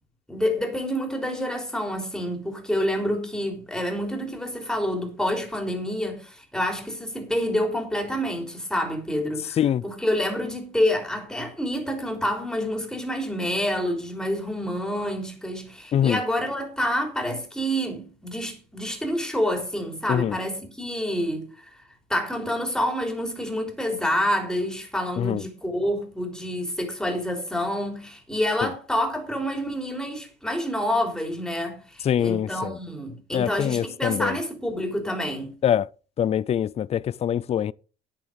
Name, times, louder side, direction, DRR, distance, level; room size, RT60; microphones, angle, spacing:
voice 1, 0.3-21.7 22.1-35.5, equal, 5° left, 3.7 m, -28 dB
voice 2, 32.0-32.8 33.3-34.4 35.6-35.9 36.2-37.7, left 9 dB, 40° left, 0.4 m, -24 dB
9.9 x 9.0 x 5.1 m
cardioid pair, 110°, 17 cm